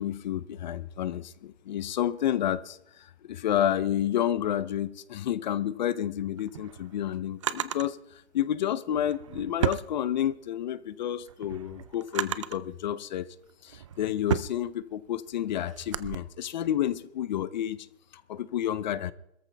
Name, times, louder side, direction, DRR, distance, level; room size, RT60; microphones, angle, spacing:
voice 1, 0.0-13.3 13.6-17.8 18.1-19.1, left 11 dB, 45° left, 0.7 m, -30 dB
Drawer open or close, 6.2-7.9 8.9-10.6 11.0-12.7 13.3-16.2, right 10 dB, 30° right, 0.4 m, -34 dB
21.0 x 14.0 x 3.4 m
hypercardioid pair, 160°, 32 cm